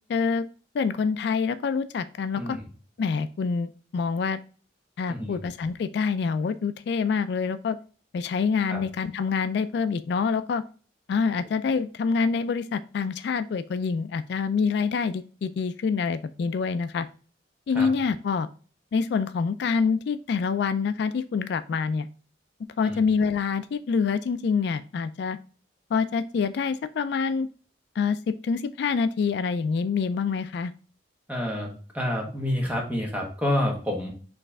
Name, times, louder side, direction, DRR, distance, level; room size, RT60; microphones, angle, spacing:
voice 1, 0.1-0.4 0.7-2.6 3.0-4.4 5.0-7.8 8.1-10.6 11.1-17.1 17.7-18.5 18.9-22.1 22.8-25.4 25.9-27.5 28.0-30.7, left 5 dB, 60° left, 12 dB, 0.3 m, -26 dB
voice 2, 5.1-5.4 8.7-8.8 17.7-17.9 22.8-23.0 31.3-34.1, left 1 dB, 10° right, 0 dB, 1.3 m, -28 dB
4.6 x 3.2 x 3.4 m, 0.40 s
head